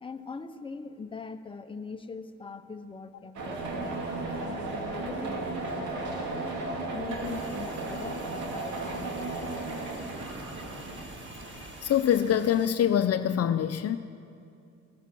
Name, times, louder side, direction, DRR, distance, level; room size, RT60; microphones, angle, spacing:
voice 1, 0.0-6.5 6.9-9.3, left 4 dB, 15° left, 7 dB, 0.8 m, -42 dB
sound 1, 3.3-12.0, right 2 dB, 70° right, 2.6 m, -35 dB
sound 2, 7.1-12.2, left 1 dB, 20° right, 3.1 m, -52 dB
sound 3, 7.2-12.7, right 3 dB, 40° right, 1.3 m, -49 dB
voice 2, 11.8-14.0, left 10 dB, 55° left, 10 dB, 0.6 m, -24 dB
15.5 x 14.5 x 6.1 m, 2.4 s
cardioid pair, 90°, 30 cm